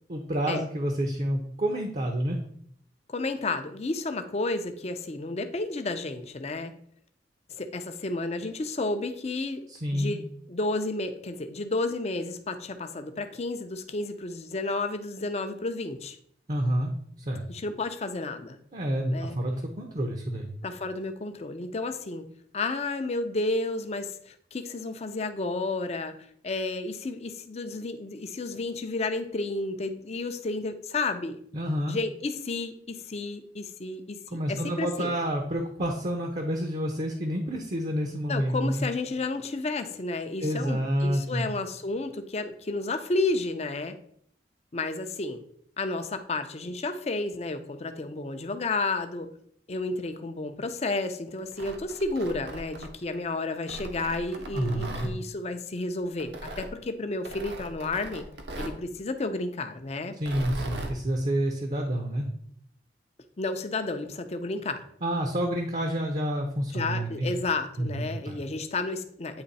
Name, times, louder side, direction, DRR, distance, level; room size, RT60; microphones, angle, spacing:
voice 1, 0.1-2.4 9.7-10.2 16.5-16.9 17.3-17.4 18.7-20.6 31.5-32.0 34.3-38.8 40.4-41.5 54.5-55.1 60.2-62.3 65.0-67.3 67.8-68.4, equal, 45° right, 3 dB, 0.7 m, -29 dB
voice 2, 3.1-6.7 7.5-9.6 9.9-16.2 17.5-18.6 19.1-19.4 20.6-22.3 22.5-31.4 31.9-35.2 38.3-44.0 44.7-45.4 45.8-49.3 49.7-58.2 58.6-60.1 63.4-64.8 66.7-69.4, left 3 dB, 35° left, 8 dB, 0.5 m, -31 dB
Tearing, 51.4-53.2 53.7-55.1 56.2-56.7 57.2-58.8 60.1-61.0, right 1 dB, 70° right, 0.9 m, -39 dB
8.8 x 3.1 x 4.1 m, 0.65 s
head